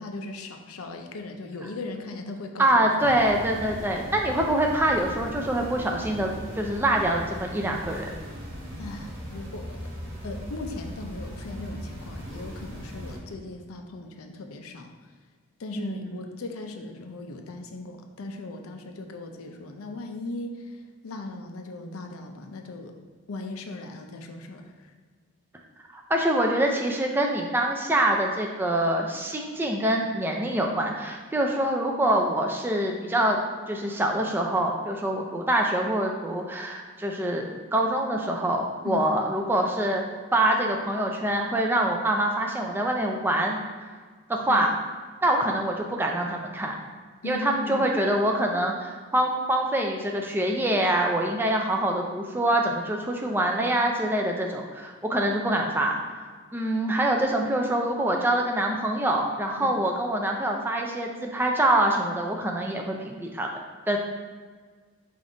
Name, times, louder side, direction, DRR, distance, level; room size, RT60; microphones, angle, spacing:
voice 1, 0.0-3.3 8.8-9.9 10.2-15.1 15.6-22.9 23.3-24.9 38.8-39.1 44.5-44.7 47.2-47.9 59.6-59.8, left 2 dB, 85° left, 4 dB, 0.5 m, -38 dB
voice 2, 2.6-8.1 15.8-16.1 25.9-33.4 33.7-40.0 40.3-43.6 44.3-44.7 45.2-46.7 47.3-56.0 56.5-63.5 63.9-64.0, right 1 dB, 10° right, 1 dB, 0.3 m, -25 dB
sound 1, 3.0-13.2, equal, 70° right, 1.3 m, -39 dB
5.2 x 2.5 x 3.8 m, 1.5 s
head